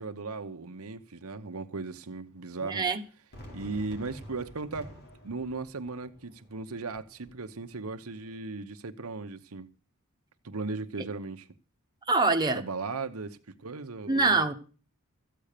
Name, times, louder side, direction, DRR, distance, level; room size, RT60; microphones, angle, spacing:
voice 1, 0.0-2.9 3.5-4.9 5.2-9.7 10.4-11.5 12.5-14.4, right 3 dB, 75° right, 1.0 m, -37 dB
voice 2, 2.6-3.0 11.0-11.1 12.1-12.6 14.1-14.5, right 3 dB, 20° right, 1.3 m, -25 dB
Fireworks, 3.3-8.4, equal, 50° left, 3.9 m, -50 dB
14.0 x 8.8 x 6.7 m
head